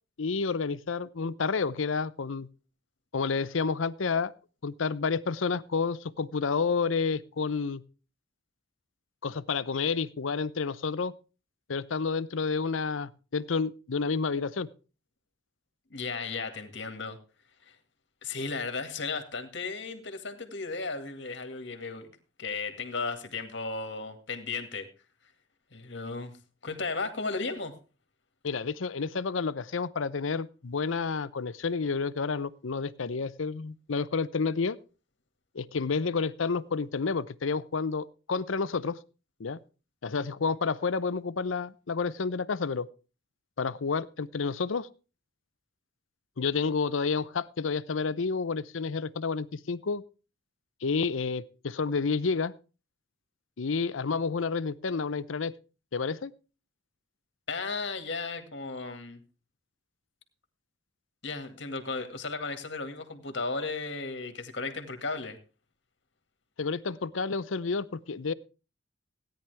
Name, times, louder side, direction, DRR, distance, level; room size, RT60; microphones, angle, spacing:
voice 1, 0.2-2.5 3.1-4.3 4.6-7.8 9.2-11.1 11.7-14.7 28.4-34.8 35.5-39.0 39.4-39.6 40.0-42.9 43.6-44.9 46.4-50.0 50.8-52.5 53.6-55.5 55.9-56.3 66.6-68.3, left 4 dB, 85° left, 17 dB, 0.7 m, -30 dB
voice 2, 15.9-17.2 17.7-17.8 18.2-22.1 22.4-24.9 25.7-26.3 26.6-27.7 57.5-59.2 61.2-65.4, left 4 dB, 60° left, 6 dB, 2.1 m, -35 dB
17.0 x 10.0 x 3.4 m, 0.34 s
head